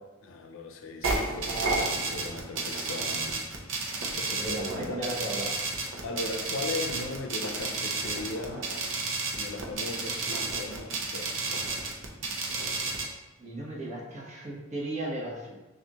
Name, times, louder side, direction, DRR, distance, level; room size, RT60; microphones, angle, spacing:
voice 1, 0.2-5.2 6.0-8.7 9.3-11.7, left 3 dB, 90° left, 4 dB, 0.6 m, -38 dB
sound 1, 1.0-13.0, right 3 dB, 75° right, 0.8 m, -32 dB
voice 2, 4.4-5.5 13.4-15.6, right 1 dB, 35° right, -4 dB, 1.1 m, -35 dB
5.9 x 2.5 x 3.0 m, 1.1 s
head